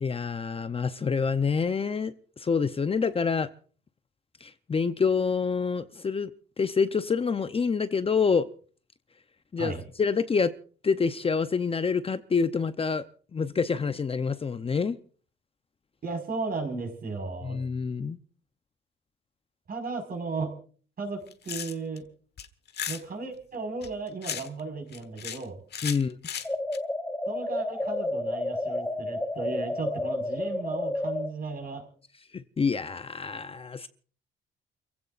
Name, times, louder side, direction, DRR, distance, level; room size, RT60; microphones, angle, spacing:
voice 1, 0.0-3.5 4.4-6.3 6.6-8.5 9.5-10.5 10.8-13.0 13.3-15.0 17.4-18.2 25.8-26.2 32.3-33.9, left 5 dB, 30° left, 0.7 m, -27 dB
voice 2, 16.0-17.6 19.7-20.6 21.0-22.1 22.9-25.6 27.3-31.8, right 3 dB, 45° right, 5.1 m, -35 dB
medicine bottle Handing, 21.2-22.0 22.4-23.0 23.8-24.6 24.9-25.4 25.7-26.8, left 8 dB, 55° left, 1.2 m, -35 dB
sound 1, 26.4-31.3, left 1 dB, 10° left, 2.9 m, -31 dB
29.0 x 16.0 x 2.5 m
cardioid pair, 90°, 20 cm